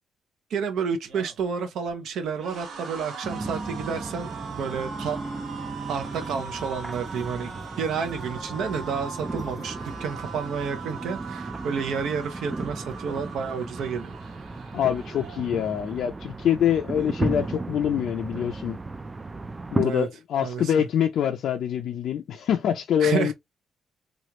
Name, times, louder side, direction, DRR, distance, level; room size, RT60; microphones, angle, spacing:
voice 1, 0.5-5.2 5.9-14.1 19.8-20.1 20.4-20.9 23.0-23.3, right 6 dB, 70° right, 0.8 m, -30 dB
sound 1, 0.9-16.1 16.5-16.7 17.0-17.8, right 5 dB, 55° right, 1.4 m, -41 dB
sound 2, 3.2-19.9, right 3 dB, 20° right, 0.3 m, -35 dB
voice 2, 14.7-18.8 19.7-23.3, left 9 dB, 65° left, 0.4 m, -25 dB
3.1 x 2.4 x 2.9 m
cardioid pair, 145°, 0 cm